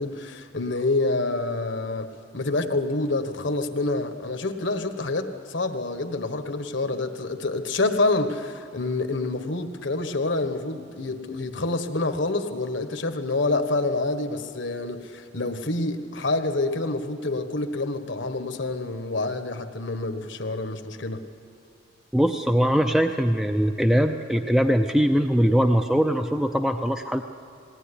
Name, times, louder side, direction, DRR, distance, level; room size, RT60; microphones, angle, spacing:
voice 1, 0.0-21.2, left 2 dB, 65° left, 8 dB, 1.4 m, -27 dB
voice 2, 22.1-27.2, equal, 5° right, 5 dB, 0.5 m, -21 dB
20.0 x 17.5 x 9.9 m, 2.5 s
head